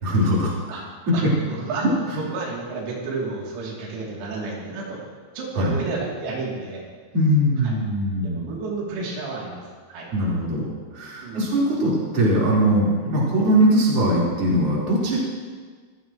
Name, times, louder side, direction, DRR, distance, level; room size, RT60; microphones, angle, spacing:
voice 1, 0.0-0.6 1.1-1.3 1.8-1.9 5.6-5.7 7.1-8.5 10.1-10.7 10.9-15.2, right 1 dB, 30° right, -6 dB, 4.5 m, -21 dB
voice 2, 1.1-1.9 2.2-5.0 5.4-6.8 7.6-7.8 8.2-9.6 9.9-10.1 11.2-11.5 15.1-15.2, right 3 dB, 90° right, -4 dB, 5.8 m, -31 dB
24.5 x 15.5 x 3.1 m, 1.5 s
omnidirectional pair, 6.0 m